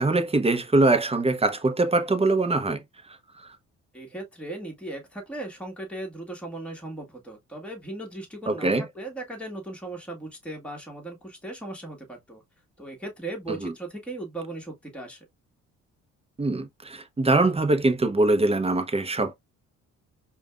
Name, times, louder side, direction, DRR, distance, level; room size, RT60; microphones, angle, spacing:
voice 1, 0.0-2.8 8.5-8.8 13.6-13.7 16.4-19.3, right 2 dB, 20° right, 0.8 m, -23 dB
voice 2, 3.9-12.4 12.8-15.2, right 2 dB, 5° left, 1.6 m, -37 dB
4.9 x 2.3 x 2.4 m
cardioid pair, 90°, 30 cm